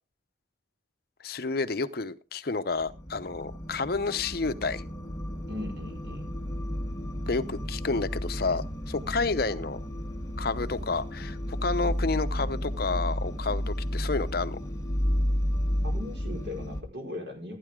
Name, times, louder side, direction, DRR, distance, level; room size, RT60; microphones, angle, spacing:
voice 1, 1.2-4.8 7.3-9.8 10.4-14.6, left 3 dB, 55° left, 11 dB, 0.8 m, -30 dB
sound 1, 2.8-16.8, equal, 20° left, 1.4 m, -32 dB
voice 2, 5.5-6.3 15.8-17.6, left 2 dB, 70° right, 1 dB, 5.2 m, -38 dB
15.5 x 9.6 x 3.7 m, 0.31 s
head